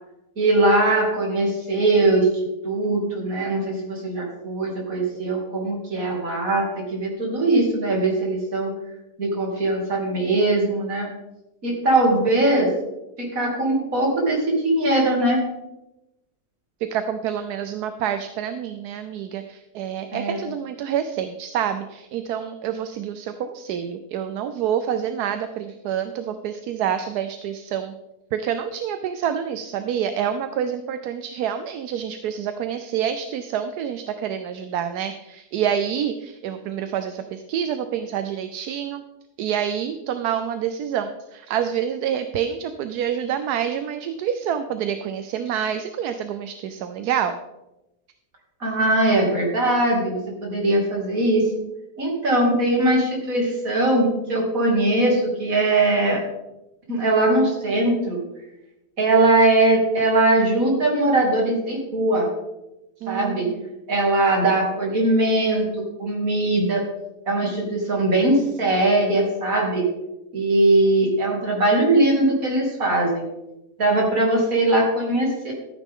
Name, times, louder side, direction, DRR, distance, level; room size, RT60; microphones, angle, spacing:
voice 1, 0.4-2.3 2.6-8.7 9.2-11.1 11.6-12.7 13.2-15.4 20.1-20.5 48.6-51.5 52.0-56.2 56.9-58.2 59.0-62.3 63.1-63.5 63.9-65.6 66.0-66.8 67.3-69.8 70.3-73.3 73.8-75.5, right 2 dB, 60° right, -2 dB, 3.3 m, -20 dB
voice 2, 16.9-27.9 28.3-39.0 39.4-47.4 63.0-63.6, right 9 dB, 80° right, 9 dB, 1.2 m, -27 dB
14.0 x 9.1 x 3.7 m, 0.95 s
omnidirectional pair, 1.7 m